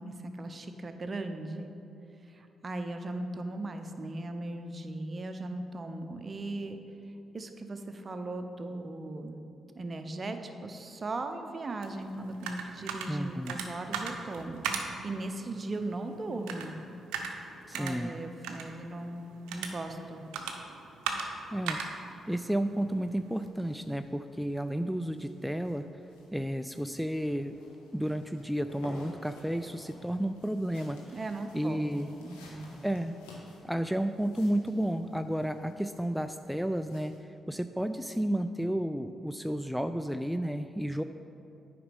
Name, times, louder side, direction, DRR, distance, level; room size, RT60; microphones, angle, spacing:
voice 1, 0.0-1.7 2.3-6.8 7.3-9.4 9.7-16.8 17.7-20.2 31.1-32.8, right 2 dB, 40° right, 7 dB, 0.7 m, -38 dB
sound 1, 11.8-23.5, right 5 dB, 80° right, 0.6 m, -40 dB
voice 2, 13.1-13.6 17.7-18.1 21.5-21.8 22.3-25.9 26.3-27.6 27.9-31.0 31.5-32.1 32.8-33.2 33.6-41.0, right 1 dB, ahead, 8 dB, 0.3 m, -32 dB
sound 2, 23.3-37.2, left 1 dB, 90° left, 1.1 m, -54 dB
8.7 x 5.2 x 5.3 m, 2.8 s
hypercardioid pair, 45°, 0 cm